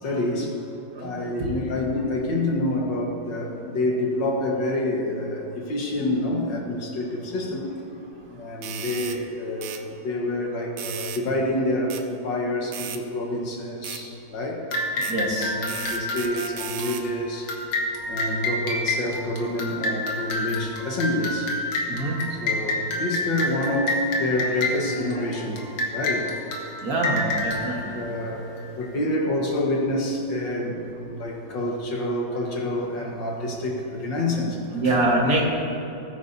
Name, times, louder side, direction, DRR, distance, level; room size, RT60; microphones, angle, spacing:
voice 1, 0.0-0.6 1.0-7.7 8.3-14.6 15.2-17.5 18.1-21.5 22.3-26.3 27.1-27.6 27.9-30.8 31.0-34.6 34.8-34.9, left 1 dB, 65° left, -1 dB, 2.1 m, -27 dB
sound 1, 8.6-9.2 9.6-9.8 10.8-11.2 11.9-12.0 12.7-13.0 13.8-14.0 15.0-15.2 15.7-17.1, right 9 dB, 75° right, 1.5 m, -35 dB
sound 2, 14.7-28.8, left 2 dB, 80° left, 2.3 m, -29 dB
voice 2, 15.1-15.5 21.9-22.2 26.8-27.9 34.7-35.5, right 2 dB, 50° right, -2 dB, 2.0 m, -24 dB
20.0 x 9.3 x 2.7 m, 3.0 s
omnidirectional pair, 2.2 m